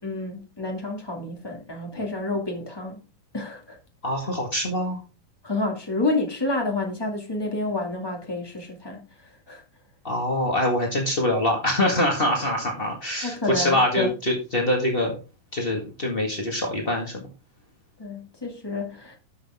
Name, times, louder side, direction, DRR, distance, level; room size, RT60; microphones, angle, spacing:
voice 1, 0.0-3.0 3.3-3.8 5.4-9.1 9.5-9.6 13.2-14.1 18.0-19.1, left 2 dB, 10° left, 1.0 m, -29 dB
voice 2, 4.0-5.0 10.0-15.2 15.5-17.2, left 1 dB, 70° left, 0.5 m, -24 dB
12.5 x 5.9 x 3.6 m
omnidirectional pair, 4.4 m